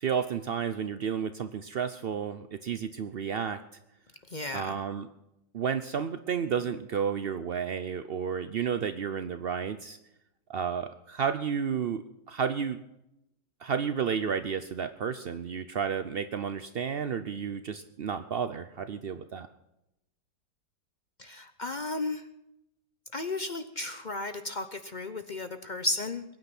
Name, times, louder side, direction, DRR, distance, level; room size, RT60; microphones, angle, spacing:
voice 1, 0.0-3.6 4.5-5.1 5.5-10.0 10.5-12.8 13.6-19.5, right 7 dB, 75° right, 10 dB, 0.5 m, -32 dB
voice 2, 4.3-4.8 21.2-22.3 23.1-26.2, left 2 dB, 50° left, 10 dB, 0.5 m, -34 dB
22.0 x 9.4 x 6.0 m, 0.85 s
omnidirectional pair, 1.9 m